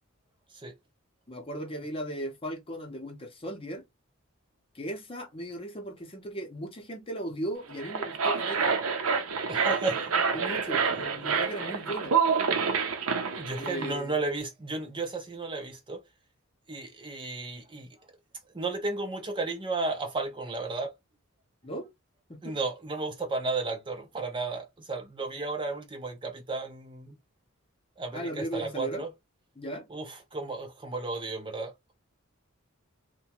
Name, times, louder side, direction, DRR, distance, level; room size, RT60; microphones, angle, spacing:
voice 1, 1.3-3.8 4.7-8.7 10.3-12.1 13.6-14.2 21.6-21.9 22.3-22.6 28.1-29.0 29.6-29.9, right 1 dB, 25° left, 0.7 m, -37 dB
sound 1, 7.7-13.9, right 5 dB, 80° right, 0.6 m, -28 dB
voice 2, 9.5-10.1 13.4-16.0 16.7-17.9 18.5-20.9 22.4-27.2 28.0-29.1 29.9-31.9, right 3 dB, 25° right, 0.6 m, -33 dB
2.8 x 2.2 x 2.8 m
head